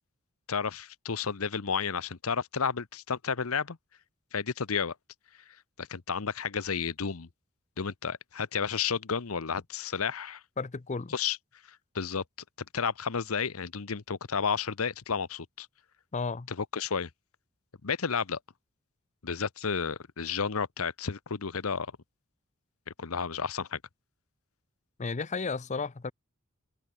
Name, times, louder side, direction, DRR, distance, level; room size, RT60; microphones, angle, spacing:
voice 1, 0.5-3.8 4.3-4.9 5.8-7.3 7.8-10.4 11.1-11.4 11.7-12.2 12.7-15.7 16.5-17.1 17.8-18.4 19.2-21.9 23.0-23.8, left 6 dB, 85° left, 0.9 m, -32 dB
voice 2, 10.6-11.1 16.1-16.5 25.0-26.1, left 4 dB, 35° left, 0.6 m, -33 dB
head